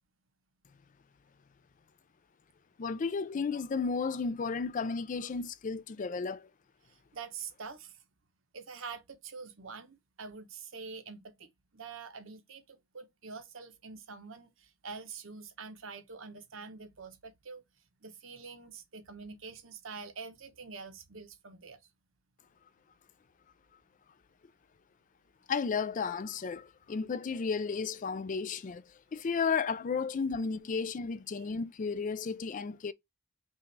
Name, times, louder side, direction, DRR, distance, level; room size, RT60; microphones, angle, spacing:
voice 1, 2.8-6.5 25.5-28.8 29.1-32.9, left 5 dB, 40° left, 0.4 m, -33 dB
voice 2, 6.9-8.0 8.5-17.6 18.0-21.8 31.3-31.5, right 5 dB, 70° right, 0.9 m, -46 dB
5.5 x 2.5 x 3.1 m
head